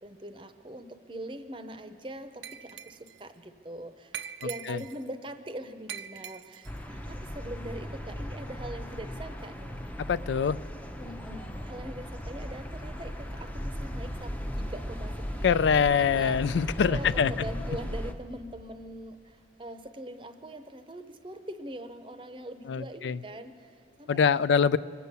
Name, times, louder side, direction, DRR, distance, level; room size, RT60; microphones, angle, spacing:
voice 1, 0.0-4.2 4.4-10.0 11.0-16.4 16.8-24.8, right 1 dB, 30° right, 9 dB, 0.6 m, -42 dB
Glass, 2.4-3.2 4.1-5.1 5.9-6.8, right 9 dB, 80° right, 0.5 m, -42 dB
sound 1, 6.7-18.1, equal, 10° left, 0.6 m, -37 dB
voice 2, 10.1-10.6 15.4-17.3 22.7-23.2 24.1-24.8, left 6 dB, 85° left, 16 dB, 0.4 m, -24 dB
24.0 x 8.2 x 6.8 m, 2.4 s
head